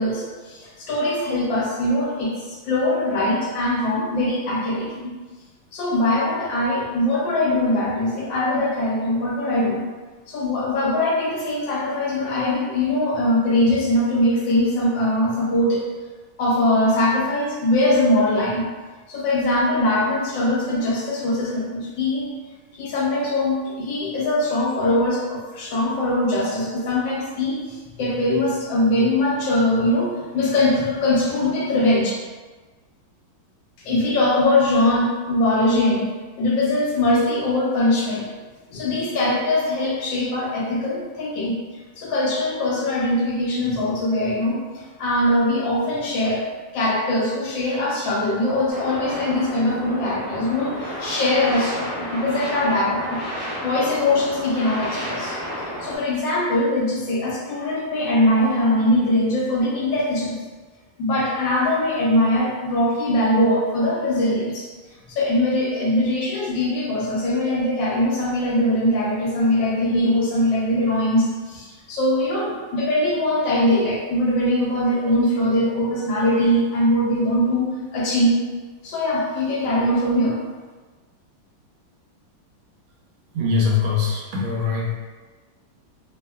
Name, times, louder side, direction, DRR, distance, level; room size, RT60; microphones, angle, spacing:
voice 1, 0.0-5.1 5.7-9.8 10.3-15.8 16.4-18.6 19.1-22.3 22.7-32.1 33.8-36.1 36.4-38.2 38.7-41.5 42.0-53.2 53.6-60.4 61.0-64.7 65.1-78.4 78.8-80.4, left 1 dB, 75° left, -4 dB, 1.2 m, -21 dB
sound 1, 48.7-56.0, equal, 35° right, 0.5 m, -31 dB
voice 2, 83.3-85.0, left 5 dB, 85° right, -4 dB, 1.5 m, -22 dB
3.4 x 2.1 x 2.2 m, 1.3 s
omnidirectional pair, 2.2 m